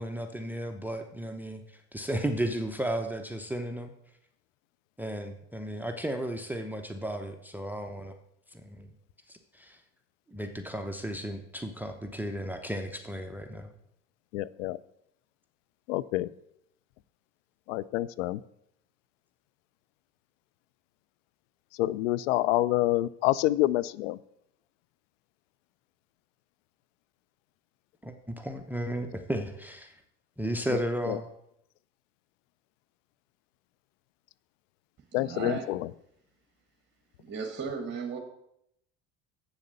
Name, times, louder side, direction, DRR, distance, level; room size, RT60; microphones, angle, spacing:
voice 1, 0.0-3.9 5.0-8.1 8.5-8.9 9.3-9.8 10.3-13.7 28.0-30.0 30.4-31.3, right 1 dB, 5° right, 6 dB, 0.9 m, -34 dB
voice 2, 14.3-14.8 15.9-16.3 17.7-18.4 21.8-24.2 31.1-31.2 35.1-35.8, left 16 dB, 85° left, 19 dB, 0.5 m, -27 dB
voice 3, 35.1-35.7 37.2-38.2, right 6 dB, 30° right, 2 dB, 1.8 m, -35 dB
7.9 x 7.0 x 6.6 m, 0.77 s
hypercardioid pair, 80°, 36 cm